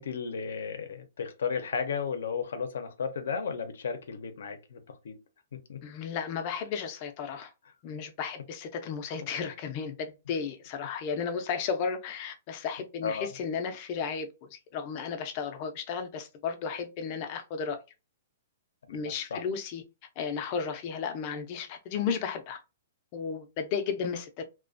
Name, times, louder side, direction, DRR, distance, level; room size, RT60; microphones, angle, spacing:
voice 1, 0.0-5.2 5.5-5.8 13.0-13.3 18.9-19.4, left 6 dB, 80° left, 0.6 m, -34 dB
voice 2, 5.8-7.5 7.8-17.8 18.9-19.8 20.2-22.6 23.1-24.4, left 6 dB, 35° left, 0.5 m, -34 dB
2.4 x 2.1 x 2.4 m
hypercardioid pair, 165°, 0 cm